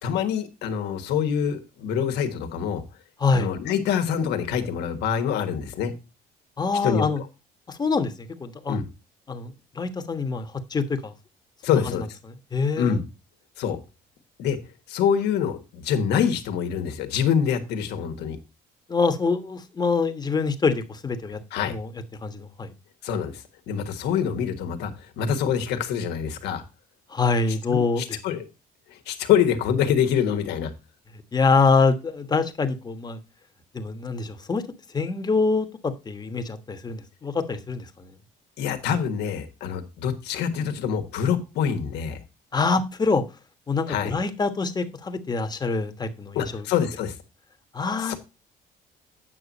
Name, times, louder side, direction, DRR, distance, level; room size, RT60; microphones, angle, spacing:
voice 1, 0.0-2.8 3.3-5.9 6.8-7.0 8.7-8.8 11.6-12.1 12.8-13.0 13.6-13.8 14.4-14.6 14.9-18.4 21.5-21.8 23.0-26.6 27.7-28.4 28.9-30.7 38.6-42.2 43.9-44.1 46.3-47.1 48.0-48.2, left 8 dB, 85° left, 1.5 m, -25 dB
voice 2, 6.6-7.2 7.7-8.8 9.3-11.1 11.7-12.0 12.5-13.0 18.9-21.4 21.6-21.9 22.2-22.7 27.1-28.4 31.3-33.2 33.7-34.6 34.9-38.1 42.5-43.2 43.7-46.6 47.7-48.2, left 4 dB, 25° left, 1.2 m, -25 dB
8.8 x 6.2 x 4.1 m
cardioid pair, 110°, 17 cm